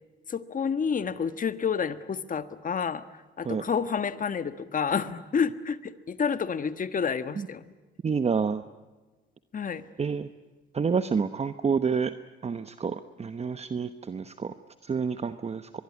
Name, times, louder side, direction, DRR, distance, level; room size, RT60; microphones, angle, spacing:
voice 1, 0.3-3.0 3.4-7.7 9.5-9.8, left 6 dB, 40° left, 12 dB, 1.5 m, -29 dB
voice 2, 8.0-8.6 10.0-10.3 10.7-12.1 12.4-14.5 14.8-15.7, right 5 dB, 30° right, 11 dB, 1.0 m, -28 dB
24.0 x 21.5 x 9.7 m, 1.2 s
cardioid pair, 90°, 20 cm